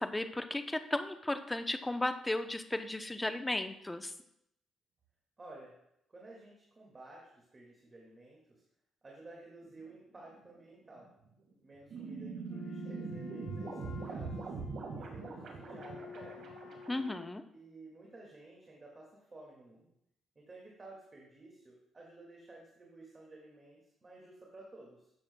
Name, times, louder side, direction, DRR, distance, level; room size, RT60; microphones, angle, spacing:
voice 1, 0.0-4.1 16.9-17.4, left 1 dB, 15° left, 8 dB, 0.6 m, -35 dB
voice 2, 5.4-5.7 6.1-8.6 9.0-11.1 11.6-14.5 15.0-16.5 17.5-19.9 20.4-25.1, right 2 dB, 30° right, -2 dB, 1.9 m, -53 dB
sound 1, 9.6-9.9 10.3-10.6 11.0-11.1 11.5-11.6 11.9-17.1, right 4 dB, 65° right, 1.7 m, -42 dB
Wind instrument woodwind instrument, 12.5-17.4, left 7 dB, 70° left, 0.8 m, -51 dB
12.5 x 7.5 x 2.2 m, 0.77 s
cardioid pair, 90°, 0 cm